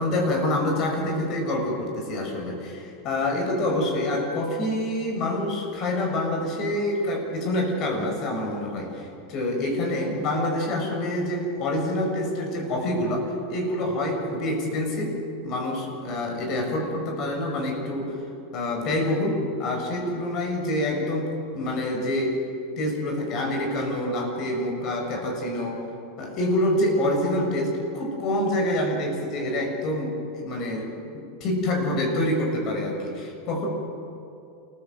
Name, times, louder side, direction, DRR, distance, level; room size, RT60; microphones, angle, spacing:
voice 1, 0.0-15.2 15.4-18.1 18.5-22.4 22.8-25.8 26.2-30.2 30.4-30.9 31.1-33.7, left 1 dB, 45° left, 2 dB, 6.9 m, -26 dB
28.5 x 15.5 x 7.9 m, 2.6 s
supercardioid pair, 120°, 0 cm